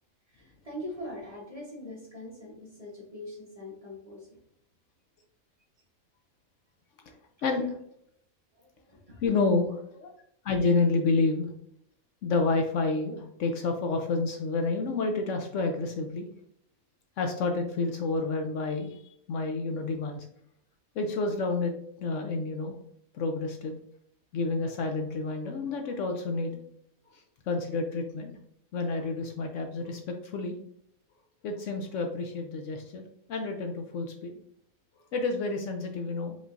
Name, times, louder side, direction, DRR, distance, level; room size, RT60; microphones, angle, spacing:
voice 1, 0.3-4.4 8.6-9.2, left 1 dB, 30° right, -4 dB, 1.1 m, -42 dB
voice 2, 7.1-7.8 9.2-10.1 10.4-11.5 12.2-16.3 17.2-20.3 21.0-21.7 22.0-22.8 23.1-23.7 24.3-26.6 27.1-28.4 28.7-30.5 31.4-33.0 33.3-34.3 35.1-36.4, left 3 dB, 70° left, 4 dB, 0.9 m, -29 dB
5.1 x 3.2 x 2.5 m, 0.70 s
omnidirectional pair, 1.5 m